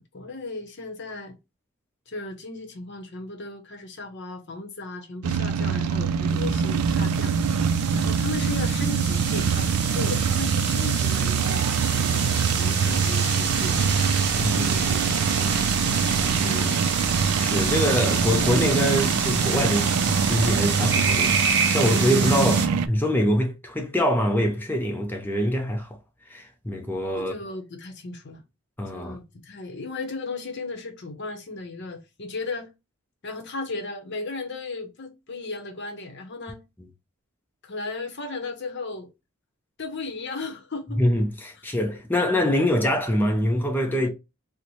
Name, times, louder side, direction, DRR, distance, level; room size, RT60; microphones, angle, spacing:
voice 1, 0.0-1.4 2.1-7.4 7.9-11.7 12.3-14.0 15.1-15.9 16.6-16.8 27.2-28.4 28.9-32.7 33.2-36.6 37.6-39.1 39.8-41.0, left 3 dB, 50° left, 0.8 m, -36 dB
sound 1, 5.2-22.9, right 6 dB, 75° right, 0.3 m, -24 dB
sound 2, 6.3-22.7, right 5 dB, 50° right, 0.7 m, -28 dB
voice 2, 14.4-15.1 16.4-16.8 17.4-26.0 26.3-27.3 28.8-29.2 41.0-44.1, equal, 10° left, 0.5 m, -24 dB
4.1 x 2.1 x 3.0 m
head